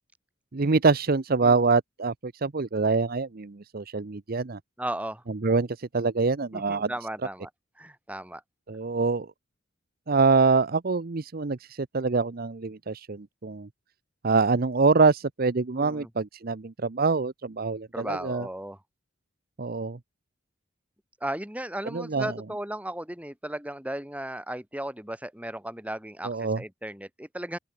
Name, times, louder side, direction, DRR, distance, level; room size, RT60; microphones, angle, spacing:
voice 1, 0.5-4.6 5.4-5.7 5.9-6.9 8.7-9.3 10.1-11.6 11.9-13.7 14.2-18.5 19.6-20.0 21.9-22.3 26.2-26.6, right 4 dB, 50° right, 0.7 m, -25 dB
voice 2, 1.4-1.8 4.8-5.2 6.5-7.5 7.8-8.4 15.8-16.1 17.9-18.8 21.2-27.6, right 1 dB, 5° right, 4.0 m, -35 dB
open air
head